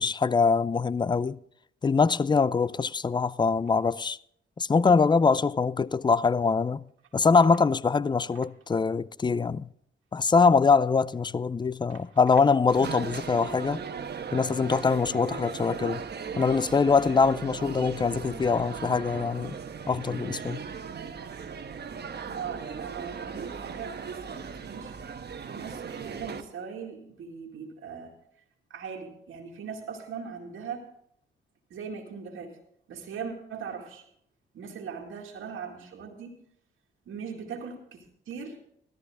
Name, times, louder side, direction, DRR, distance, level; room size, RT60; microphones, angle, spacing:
voice 1, 0.0-1.4 1.8-4.2 4.6-6.9 7.1-9.7 10.1-13.8 14.3-16.0 16.4-19.6 19.9-20.6, left 5 dB, 20° left, 0.4 m, -23 dB
sound 1, 12.7-26.4, right 6 dB, 50° right, 1.2 m, -38 dB
voice 2, 22.2-24.9 25.4-28.2 28.7-30.9 31.7-32.6 32.9-34.1 34.5-36.3 37.1-38.6, right 6 dB, 75° right, 2.0 m, -40 dB
14.5 x 13.5 x 3.6 m
supercardioid pair, 55°, 21 cm